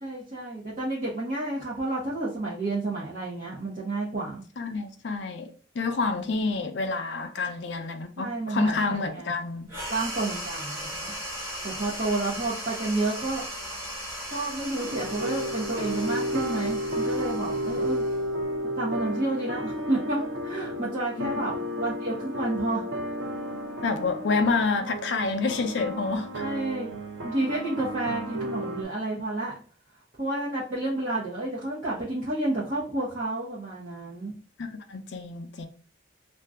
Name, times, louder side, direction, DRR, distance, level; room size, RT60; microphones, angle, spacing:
voice 1, 0.0-4.4 8.2-9.3 9.9-11.1 11.6-13.4 14.3-18.1 18.8-22.9 26.4-26.9 27.2-29.5 30.2-34.3, right 2 dB, 40° right, 0.7 m, -30 dB
voice 2, 4.6-9.7 21.2-21.5 23.8-26.4 34.6-35.7, left 4 dB, 65° left, 0.5 m, -28 dB
sound 1, 9.7-18.6, equal, 15° right, 0.9 m, -37 dB
sound 2, 14.8-28.8, equal, 80° right, 0.6 m, -32 dB
2.6 x 2.2 x 3.4 m
head